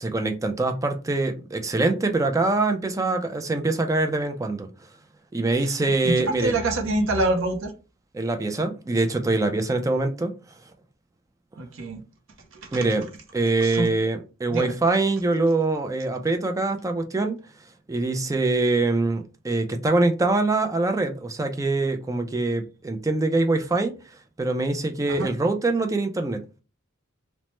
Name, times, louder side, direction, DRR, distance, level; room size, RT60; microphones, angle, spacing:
voice 1, 0.0-4.7 5.3-6.6 8.1-10.4 12.7-13.1 13.3-17.4 17.9-23.9 24.4-26.4, right 2 dB, 15° right, 0.3 m, -24 dB
voice 2, 6.0-7.7 11.6-12.0 12.5-12.9 13.6-13.9 14.5-14.7 25.1-25.3, right 2 dB, 65° right, 0.6 m, -26 dB
3.1 x 2.1 x 3.0 m
head